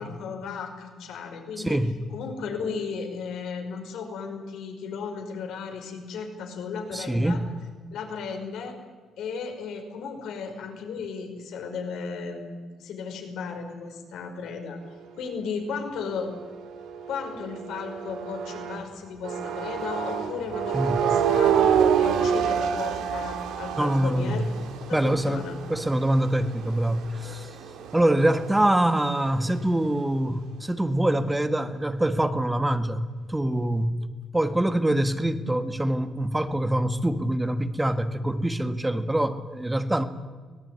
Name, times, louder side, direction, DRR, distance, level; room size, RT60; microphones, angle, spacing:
voice 1, 0.0-1.8 2.1-7.4 7.9-8.8 9.2-14.8 15.2-16.3 17.1-24.4 24.9-25.6, left 5 dB, 80° left, 4 dB, 5.3 m, -35 dB
voice 2, 1.6-2.0 6.9-7.5 20.7-21.0 23.7-24.5 24.9-27.6 27.9-34.1 34.3-40.0, right 1 dB, 10° right, 9 dB, 1.8 m, -25 dB
sound 1, 16.0-18.8 19.2-29.7, right 8 dB, 90° right, 2.6 m, -28 dB
23.5 x 18.0 x 9.6 m, 1.5 s
cardioid pair, 90°, 0 cm